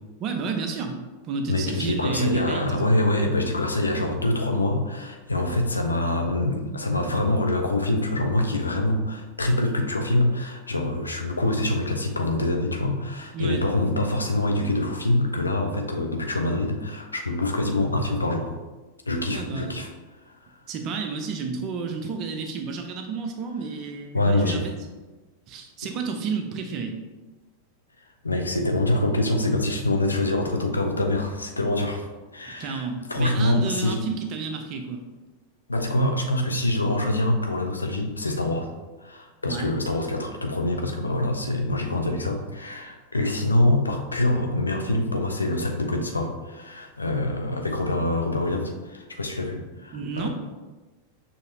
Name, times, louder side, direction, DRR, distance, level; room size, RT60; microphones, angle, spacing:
voice 1, 0.2-1.0 1.2-2.8 13.3-13.6 19.3-19.7 20.7-24.7 25.5-27.0 32.6-35.1 39.5-39.7 49.9-50.3, right 5 dB, 35° right, 5 dB, 0.6 m, -31 dB
voice 2, 1.5-18.6 19.1-19.9 20.3-20.4 24.1-24.6 28.2-32.1 32.3-34.0 35.7-38.7 39.0-50.3, left 1 dB, 80° left, 3 dB, 0.5 m, -25 dB
6.5 x 2.8 x 2.7 m, 1.2 s
figure-of-eight pair, 90°, 0 cm